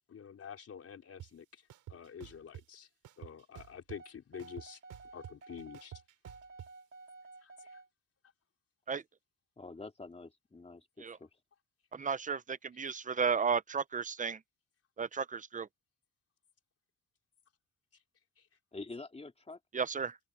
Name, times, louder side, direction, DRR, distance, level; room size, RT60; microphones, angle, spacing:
voice 1, 0.1-1.6 1.9-2.9 3.2-4.8 5.1-5.9 7.4-7.8 18.4-18.5, left 7 dB, 50° left, 4.4 m, -48 dB
sound 1, 1.2-1.3 1.7-2.6 3.0-4.1 4.4-6.7, right 12 dB, 80° right, 3.8 m, -50 dB
sound 2, 3.9-7.9, right 3 dB, 40° right, 3.6 m, -53 dB
voice 2, 9.6-11.4 18.7-19.6, left 3 dB, 20° left, 2.7 m, -47 dB
voice 3, 11.9-14.4 15.0-15.7 19.7-20.2, right 6 dB, 25° right, 0.8 m, -33 dB
cardioid pair, 90°, 30 cm